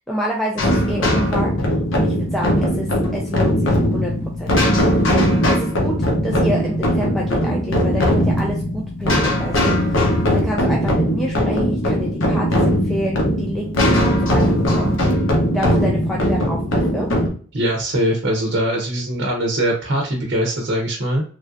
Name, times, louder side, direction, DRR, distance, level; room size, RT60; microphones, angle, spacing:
voice 1, 0.1-4.5 5.5-10.0 10.3-14.9 15.5-17.1, equal, ahead, -3 dB, 0.3 m, -28 dB
sound 1, 0.6-17.3, equal, 55° left, 0.8 m, -19 dB
voice 2, 17.5-21.2, right 1 dB, 50° right, 0 dB, 0.7 m, -21 dB
3.2 x 2.6 x 2.3 m, 0.44 s
head